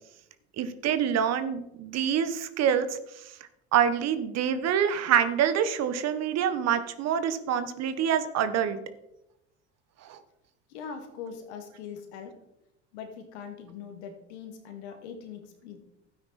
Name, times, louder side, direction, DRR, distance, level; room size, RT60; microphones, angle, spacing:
voice 1, 0.6-3.0 3.7-8.8 10.0-10.2, right 8 dB, 50° right, 11 dB, 1.3 m, -26 dB
voice 2, 10.7-12.3 12.9-15.8, left 6 dB, 75° left, 5 dB, 2.4 m, -41 dB
12.5 x 9.4 x 4.3 m, 0.85 s
hypercardioid pair, 80°, 33 cm